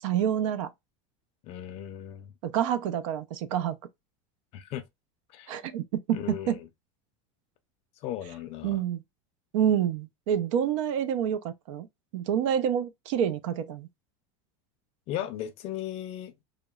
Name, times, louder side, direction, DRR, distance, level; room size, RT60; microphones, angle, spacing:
voice 1, 0.0-0.7 2.4-3.8 5.5-6.6 8.6-9.0 9.5-11.9 12.1-13.9, right 9 dB, 80° right, 0.4 m, -28 dB
voice 2, 1.4-2.3 4.5-4.8 5.3-5.6 6.1-6.6 8.0-8.8 15.1-16.3, left 11 dB, 40° left, 0.4 m, -36 dB
2.8 x 2.0 x 2.2 m
supercardioid pair, 160°, 16 cm